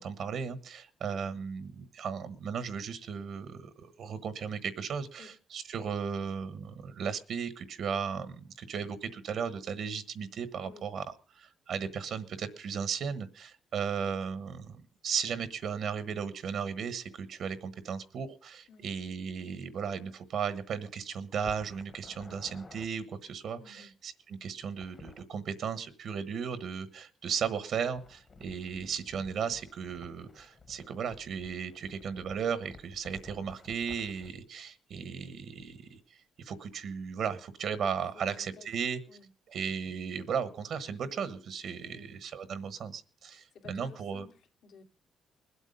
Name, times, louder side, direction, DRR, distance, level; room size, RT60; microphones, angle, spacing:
voice 1, 0.0-11.0 11.3-39.0 39.5-44.3, right 6 dB, 60° right, 1.1 m, -36 dB
sound 1, 21.4-22.9 24.6-25.3 27.9-34.3, left 3 dB, 30° left, 1.3 m, -53 dB
voice 2, 23.6-23.9 38.1-38.7 39.1-39.3 41.8-42.1 43.3-44.8, left 5 dB, 70° left, 2.6 m, -54 dB
21.0 x 8.2 x 5.2 m
cardioid pair, 150°, 0 cm